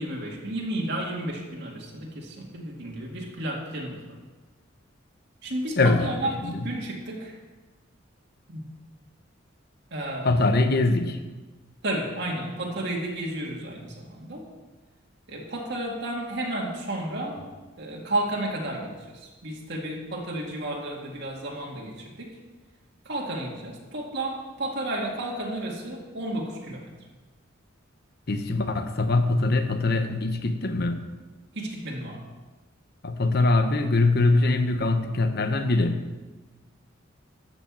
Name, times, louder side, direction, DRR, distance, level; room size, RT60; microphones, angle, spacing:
voice 1, 0.0-4.0 5.4-7.4 8.5-8.7 9.9-10.4 11.8-14.5 15.3-17.4 17.8-22.4 23.1-26.9 31.5-32.2, right 1 dB, 60° right, -1 dB, 2.0 m, -32 dB
voice 2, 5.8-6.7 10.2-11.2 28.3-31.1 33.0-36.0, left 2 dB, 50° left, 7 dB, 0.9 m, -23 dB
13.5 x 6.0 x 7.5 m, 1.2 s
head